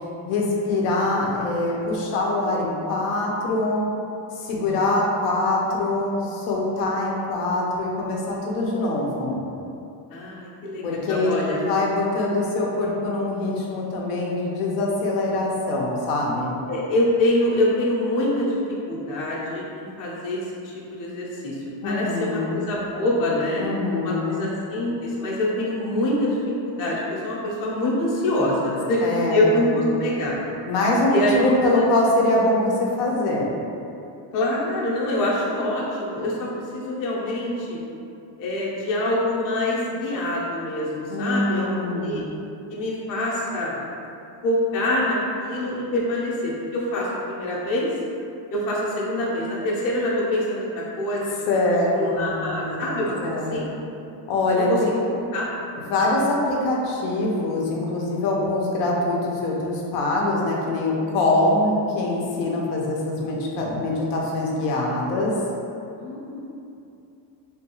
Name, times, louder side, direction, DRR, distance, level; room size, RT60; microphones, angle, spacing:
voice 1, 0.3-3.8 4.3-9.4 10.8-16.6 21.8-22.6 23.6-24.5 29.0-29.8 30.7-33.5 41.1-42.2 51.5-53.6 54.3-54.7 55.9-65.3, left 2 dB, 80° left, -3 dB, 0.7 m, -24 dB
voice 2, 10.1-11.6 16.7-18.6 18.9-23.6 24.0-26.4 26.6-30.4 31.1-31.9 34.3-37.8 38.4-42.2 42.7-43.8 44.4-47.9 48.5-51.2 51.9-53.7 54.5-55.0 55.3-55.5 66.0-66.4, left 1 dB, 40° left, -5 dB, 0.7 m, -25 dB
3.3 x 2.3 x 2.9 m, 2.6 s
cardioid pair, 150°, 49 cm